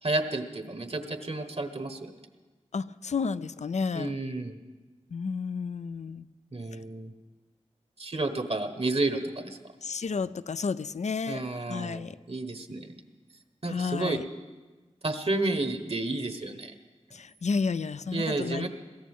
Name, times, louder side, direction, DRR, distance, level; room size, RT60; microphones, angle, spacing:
voice 1, 0.0-2.1 3.9-4.6 6.5-7.1 8.0-9.6 11.3-12.9 13.6-14.2 15.0-16.7 18.1-18.7, right 2 dB, 55° right, 8 dB, 1.2 m, -31 dB
voice 2, 2.7-4.1 5.1-6.3 9.8-12.2 13.7-14.2 17.1-18.7, left 5 dB, 75° left, 15 dB, 0.4 m, -31 dB
22.0 x 16.0 x 3.6 m, 1.2 s
wide cardioid pair, 60°, 12 cm